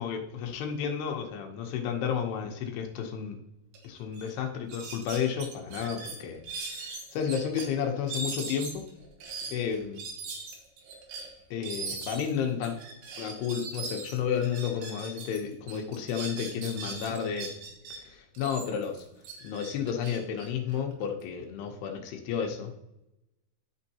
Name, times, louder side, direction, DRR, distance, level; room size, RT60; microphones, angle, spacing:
voice 1, 0.0-3.4 3.8-8.9 9.5-10.0 11.5-12.8 13.2-17.6 17.9-19.0 19.4-22.7, left 7 dB, 80° left, 3 dB, 2.9 m, -32 dB
sound 1, 3.7-3.9 4.1-4.3 4.7-7.7 8.1-15.4 15.7-18.0 18.4-21.2, right 4 dB, 90° right, 3.5 m, -40 dB
12.5 x 5.3 x 2.8 m, 0.89 s
omnidirectional pair, 4.7 m